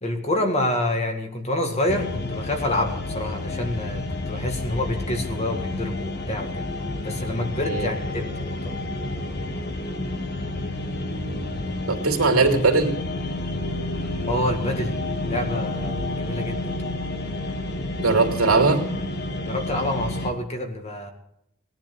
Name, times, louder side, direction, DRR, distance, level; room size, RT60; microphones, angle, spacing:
voice 1, 0.0-6.6 7.0-8.8 14.3-14.9 15.3-16.7 19.4-21.1, left 1 dB, 30° left, 4 dB, 2.0 m, -27 dB
sound 1, 1.9-20.3, left 2 dB, 50° left, 1.5 m, -30 dB
voice 2, 11.9-12.9 18.0-18.8, right 3 dB, 90° right, 3 dB, 2.9 m, -19 dB
18.5 x 10.5 x 7.0 m, 0.75 s
head